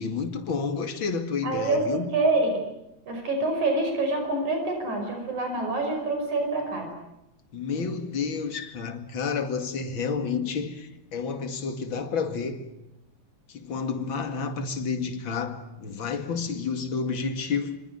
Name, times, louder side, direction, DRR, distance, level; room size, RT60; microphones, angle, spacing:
voice 1, 0.0-2.1 7.5-12.6 13.5-17.8, left 5 dB, 45° left, 2.7 m, -30 dB
voice 2, 1.4-2.6 3.1-6.9, right 2 dB, 80° right, 6.8 m, -26 dB
26.5 x 26.0 x 8.1 m
omnidirectional pair, 3.3 m